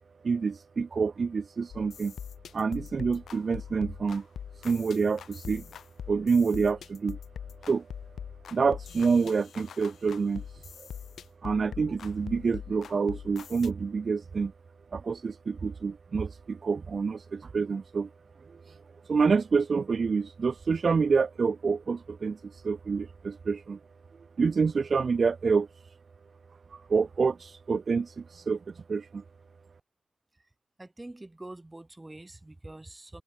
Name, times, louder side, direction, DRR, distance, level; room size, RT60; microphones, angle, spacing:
voice 1, 0.2-2.1 2.5-4.3 4.5-5.7 6.1-7.2 7.6-7.9 8.5-10.9 11.4-14.5 14.9-18.1 18.4-23.8 24.4-25.7 26.7-29.2, right 5 dB, 35° right, 0.4 m, -27 dB
sound 1, 1.7-13.7, left 8 dB, 55° left, 0.6 m, -43 dB
voice 2, 30.8-33.2, right 2 dB, 15° right, 0.8 m, -45 dB
cardioid pair, 90°, 0 cm